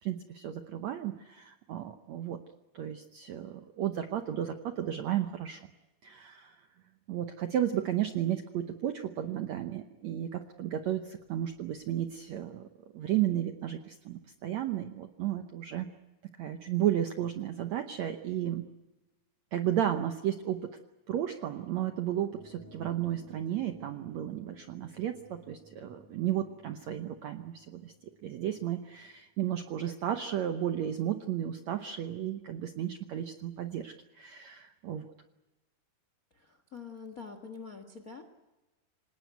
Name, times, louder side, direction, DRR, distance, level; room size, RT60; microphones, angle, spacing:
voice 1, 0.0-2.4 2.7-5.6 6.0-6.5 7.1-12.7 12.9-15.9 16.4-18.7 19.5-20.7 21.1-27.9 28.2-35.1, right 11 dB, 80° right, 7 dB, 1.6 m, -33 dB
sound 1, 22.3-29.1, equal, 45° left, 6.1 m, -57 dB
voice 2, 36.4-38.2, left 5 dB, 75° left, 9 dB, 0.8 m, -45 dB
26.0 x 19.0 x 9.3 m, 1.1 s
omnidirectional pair, 4.4 m